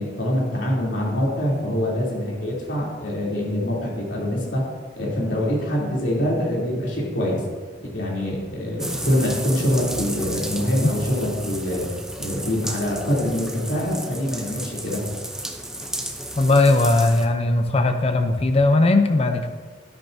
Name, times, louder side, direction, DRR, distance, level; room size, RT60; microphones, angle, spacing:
voice 1, 0.0-4.6 4.9-7.4 7.9-11.9 12.2-15.0, equal, 75° left, -4 dB, 3.2 m, -24 dB
sound 1, 8.8-17.2, right 1 dB, 5° right, 0.7 m, -33 dB
voice 2, 16.4-19.5, left 2 dB, 35° left, 6 dB, 0.6 m, -18 dB
12.0 x 10.5 x 2.7 m, 1.5 s
head